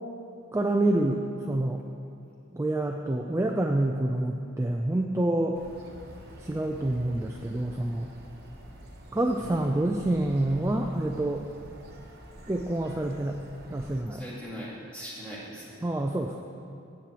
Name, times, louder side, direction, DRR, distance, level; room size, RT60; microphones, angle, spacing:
voice 1, 0.5-1.8 2.5-5.6 6.4-8.1 9.1-11.5 12.5-13.4 13.7-14.2 15.8-16.4, right 1 dB, 15° right, 2 dB, 0.3 m, -27 dB
sound 1, 5.5-14.0, right 1 dB, 45° right, 1.0 m, -47 dB
voice 2, 14.1-15.8, equal, 5° left, -7 dB, 2.0 m, -40 dB
16.0 x 7.6 x 2.9 m, 2.6 s
head